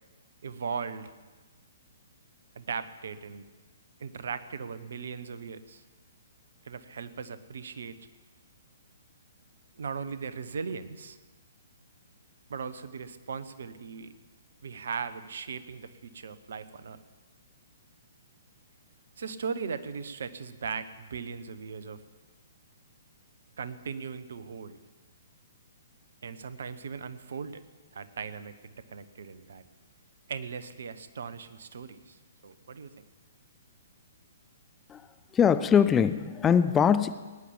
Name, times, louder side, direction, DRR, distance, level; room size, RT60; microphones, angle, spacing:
voice 1, 0.4-1.1 2.5-3.4 4.0-5.8 6.6-8.0 9.8-11.2 12.5-14.1 14.6-17.0 19.2-22.0 23.6-24.8 26.2-27.6 27.9-29.6 30.3-33.0, right 5 dB, 60° right, 13 dB, 1.0 m, -38 dB
voice 2, 35.3-37.1, left 7 dB, 15° left, 12 dB, 0.6 m, -22 dB
19.0 x 10.0 x 7.3 m, 1.3 s
figure-of-eight pair, 120°, 0 cm